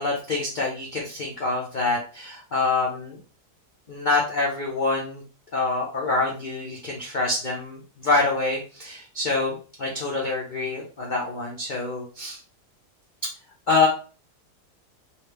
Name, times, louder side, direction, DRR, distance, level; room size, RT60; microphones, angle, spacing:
voice 1, 0.0-3.2 3.9-5.2 5.5-12.4 13.7-13.9, left 3 dB, 90° left, -2 dB, 0.4 m, -26 dB
3.1 x 2.4 x 3.3 m, 0.36 s
omnidirectional pair, 1.8 m